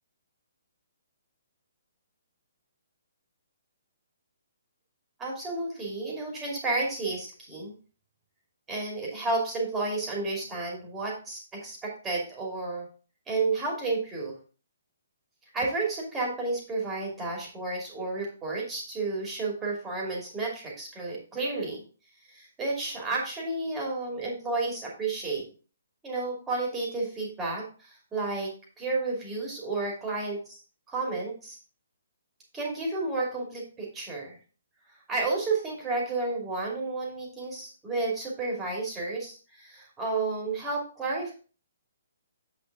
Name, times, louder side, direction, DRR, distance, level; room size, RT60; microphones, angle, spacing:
voice 1, 5.2-7.7 8.7-12.9 13.3-14.3 15.5-21.8 22.3-25.5 26.0-28.5 28.8-30.6 30.9-31.6 32.5-34.4 35.1-41.3, right 3 dB, 10° right, -2 dB, 2.6 m, -31 dB
7.8 x 5.3 x 3.7 m, 0.37 s
figure-of-eight pair, 130°, 0 cm